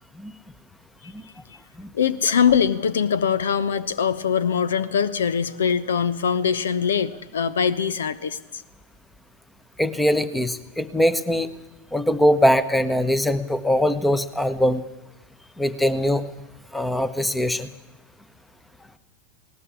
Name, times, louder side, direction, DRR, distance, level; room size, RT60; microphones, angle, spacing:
voice 1, 1.9-8.6, left 7 dB, 65° left, 16 dB, 0.9 m, -22 dB
voice 2, 9.8-11.5 11.9-14.8 15.6-16.2 16.7-17.7, equal, 5° left, 14 dB, 1.2 m, -21 dB
19.5 x 18.5 x 8.6 m, 1.0 s
figure-of-eight pair, 90°, 0 cm